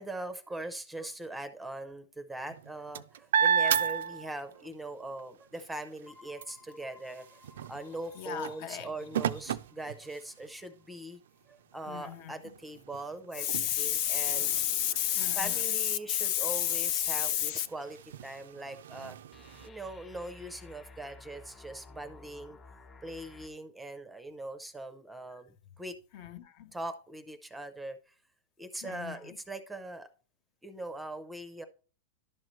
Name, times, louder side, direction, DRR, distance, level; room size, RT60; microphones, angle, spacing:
voice 1, 0.0-7.4 7.7-11.2 11.5-14.5 15.4-19.2 19.6-22.6 23.0-26.0 26.7-28.1 28.6-30.1 30.6-31.7, right 2 dB, 5° right, 0.6 m, -41 dB
sound 1, 2.4-4.8 5.2-10.6 11.3-11.4 11.7-19.7, right 8 dB, 90° right, 0.4 m, -35 dB
sound 2, 6.1-10.9 11.4-11.5 19.3-23.5, left 3 dB, 20° left, 1.2 m, -55 dB
voice 2, 8.1-8.9 11.9-12.4 13.3-17.7 26.1-26.7 28.8-29.4, left 11 dB, 50° left, 0.7 m, -31 dB
11.5 x 6.3 x 3.2 m
supercardioid pair, 160°, 0 cm